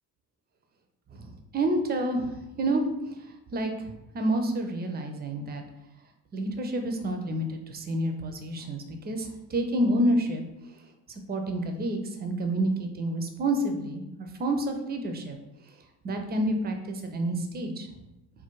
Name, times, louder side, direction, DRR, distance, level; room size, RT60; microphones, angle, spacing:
voice 1, 1.1-3.2 3.5-3.9 4.1-5.6 6.3-10.4 11.1-15.4 16.0-17.9, right 1 dB, 20° right, 5 dB, 0.4 m, -29 dB
3.4 x 2.3 x 2.9 m, 0.92 s
figure-of-eight pair, 45°, 50 cm